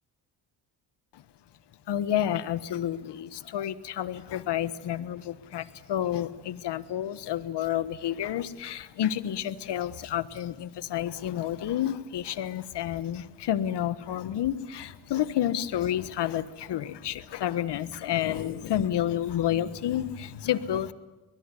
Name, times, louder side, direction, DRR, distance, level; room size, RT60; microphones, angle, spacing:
voice 1, 1.9-20.9, left 11 dB, 75° left, 15 dB, 1.4 m, -30 dB
23.5 x 20.5 x 9.9 m, 1.1 s
cardioid pair, 80°, 41 cm